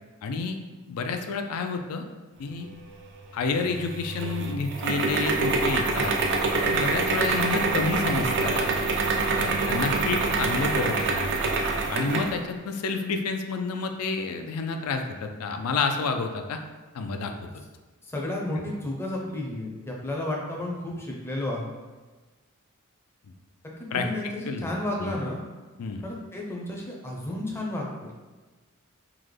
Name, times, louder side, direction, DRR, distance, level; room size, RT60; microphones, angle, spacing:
voice 1, 0.2-0.6 0.9-2.0 2.4-2.7 3.3-6.1 6.7-8.7 9.4-11.4 11.9-16.6 16.9-17.5 23.9-24.1 24.5-24.7 25.0-25.2 25.8-26.0, left 4 dB, 80° left, 6 dB, 0.4 m, -29 dB
sound 1, 3.6-12.4, right 3 dB, 55° right, 0.4 m, -26 dB
voice 2, 18.0-21.7 23.6-25.4 26.0-28.1, left 1 dB, 10° left, -2 dB, 0.5 m, -32 dB
3.6 x 2.1 x 3.2 m, 1.3 s
head